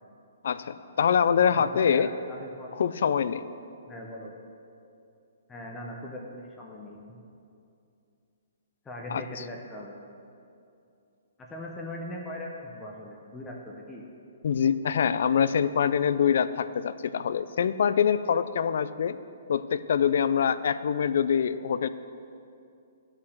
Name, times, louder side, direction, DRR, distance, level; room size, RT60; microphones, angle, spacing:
voice 1, 0.4-2.1 2.7-3.5 9.1-9.2 14.4-19.2 19.5-21.9, left 7 dB, 50° left, 14 dB, 0.3 m, -24 dB
voice 2, 1.5-2.7 3.9-4.3 5.5-7.0 8.8-9.9 11.5-14.0, left 1 dB, 5° left, -2 dB, 0.6 m, -40 dB
11.5 x 5.7 x 6.4 m, 2.5 s
hypercardioid pair, 180°, 0 cm